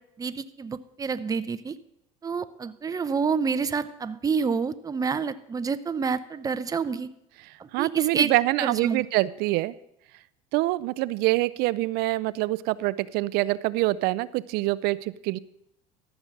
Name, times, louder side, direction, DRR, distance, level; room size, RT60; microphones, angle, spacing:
voice 1, 0.2-1.8 2.2-7.1 7.6-8.3 8.6-9.0, right 5 dB, 20° right, 12 dB, 0.6 m, -28 dB
voice 2, 7.7-9.7 10.5-15.4, right 18 dB, 60° right, 18 dB, 0.4 m, -25 dB
13.5 x 6.1 x 6.5 m, 0.81 s
hypercardioid pair, 85°, 18 cm